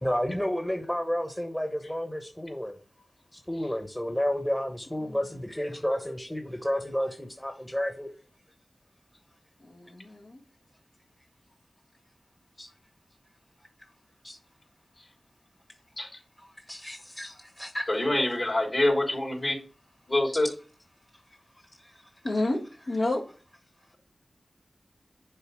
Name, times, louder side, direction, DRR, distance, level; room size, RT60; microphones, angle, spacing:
voice 1, 0.0-2.8 3.3-8.1 12.6-12.7 14.2-14.4 16.4-17.9 21.8-22.1, equal, 15° left, 4 dB, 1.2 m, -31 dB
voice 2, 9.6-10.4 22.2-22.6 22.9-23.2, left 2 dB, 75° left, -2 dB, 1.9 m, -29 dB
voice 3, 17.9-19.6 20.1-20.5, left 1 dB, 50° left, -1 dB, 3.3 m, -25 dB
6.8 x 3.9 x 6.2 m, 0.37 s
cardioid pair, 45°, 0 cm